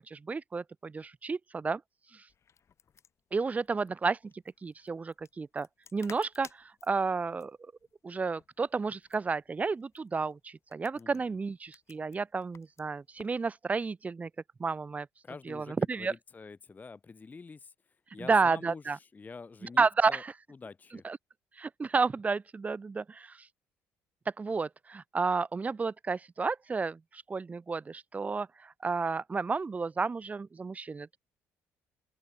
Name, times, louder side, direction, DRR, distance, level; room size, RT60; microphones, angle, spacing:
voice 1, 0.1-1.8 2.1-2.2 3.3-4.2 4.6-5.7 5.9-7.6 8.0-14.3 14.6-15.1 15.5-16.1 18.2-19.0 19.8-20.3 21.0-21.2 21.6-23.5 24.4-31.2, right 4 dB, 25° right, 0.3 m, -31 dB
sound 1, 2.3-13.4, left 7 dB, 45° left, 1.3 m, -57 dB
voice 2, 10.9-11.4 15.2-20.2 20.5-21.1, left 4 dB, 25° left, 0.6 m, -47 dB
open air
supercardioid pair, 65°, 6 cm